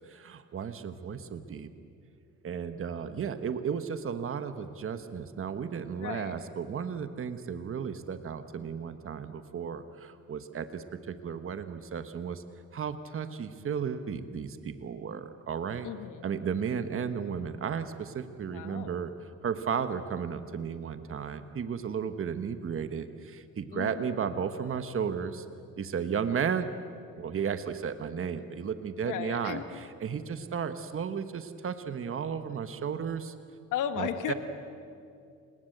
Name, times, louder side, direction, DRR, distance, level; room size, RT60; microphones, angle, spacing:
voice 1, 0.0-1.7 2.4-12.4 12.7-15.9 16.2-19.1 19.4-25.4 25.8-26.7 27.2-33.3 34.0-34.3, right 7 dB, 45° right, 10 dB, 1.3 m, -34 dB
voice 2, 6.0-6.3 15.8-16.3 18.5-18.9 23.7-24.1 29.0-29.6 33.7-34.3, left 9 dB, 90° left, 9 dB, 1.5 m, -34 dB
28.5 x 20.0 x 8.0 m, 2.5 s
cardioid pair, 90°, 30 cm